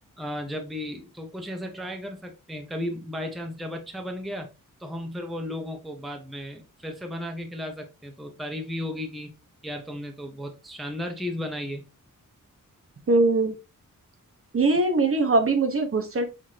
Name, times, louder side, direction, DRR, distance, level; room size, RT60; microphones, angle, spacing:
voice 1, 0.2-4.5 4.8-9.3 9.6-11.8, left 1 dB, ahead, 4 dB, 0.6 m, -34 dB
voice 2, 13.1-13.5 14.5-16.3, right 3 dB, 45° right, 6 dB, 0.7 m, -21 dB
5.8 x 2.6 x 3.1 m, 0.28 s
wide cardioid pair, 165°, 33 cm